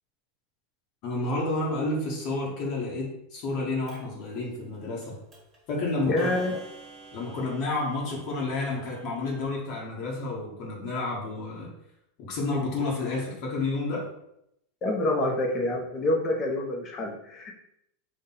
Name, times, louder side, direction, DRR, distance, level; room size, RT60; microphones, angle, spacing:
voice 1, 1.0-5.2 5.7-6.3 7.1-11.7 12.2-14.1, left 2 dB, 50° left, -3 dB, 1.2 m, -30 dB
Clock, 3.9-4.0 5.0-5.1 5.3-5.6 6.2-9.4, right 3 dB, 15° right, 1.6 m, -48 dB
voice 2, 6.1-6.6 14.8-17.6, left 1 dB, 30° left, 1 dB, 0.9 m, -27 dB
4.1 x 2.6 x 3.9 m, 0.79 s
supercardioid pair, 125°, 0 cm